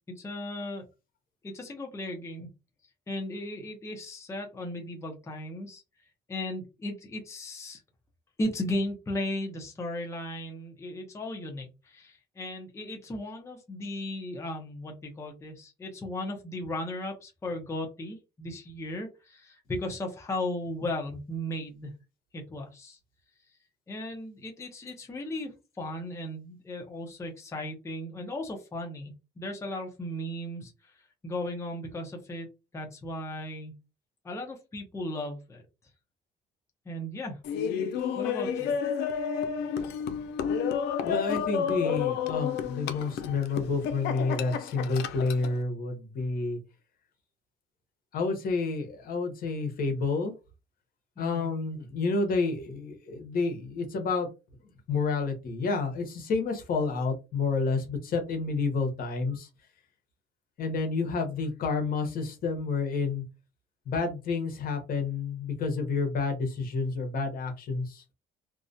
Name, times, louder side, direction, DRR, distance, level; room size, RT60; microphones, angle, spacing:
voice 1, 0.1-0.9 1.4-2.5 3.1-5.8 6.3-7.8 8.4-21.9 22.3-23.0 23.9-32.5 32.7-33.8 34.2-35.6 36.9-37.4 38.2-38.7 51.2-51.5, left 1 dB, 15° left, 2 dB, 0.6 m, -36 dB
Laughter, 37.4-45.5, left 7 dB, 85° left, 0.4 m, -31 dB
voice 2, 41.0-46.6 48.1-50.3 51.2-54.3 54.9-59.5 60.6-63.2 63.9-68.0, left 4 dB, 60° left, 4 dB, 0.8 m, -29 dB
2.3 x 2.0 x 2.5 m, 0.28 s
cardioid pair, 110°, 17 cm